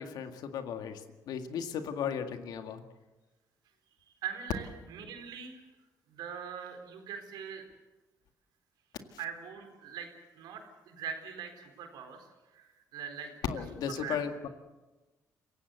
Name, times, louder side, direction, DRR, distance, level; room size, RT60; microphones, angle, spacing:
voice 1, 0.0-2.8 13.4-14.5, left 7 dB, 80° left, 7 dB, 2.0 m, -36 dB
voice 2, 4.2-5.6 6.1-7.6 9.2-10.1 10.3-12.3 12.5-13.3 13.9-14.2, right 7 dB, 85° right, 5 dB, 4.1 m, -42 dB
27.0 x 16.5 x 8.1 m, 1.2 s
cardioid pair, 75°, 7 cm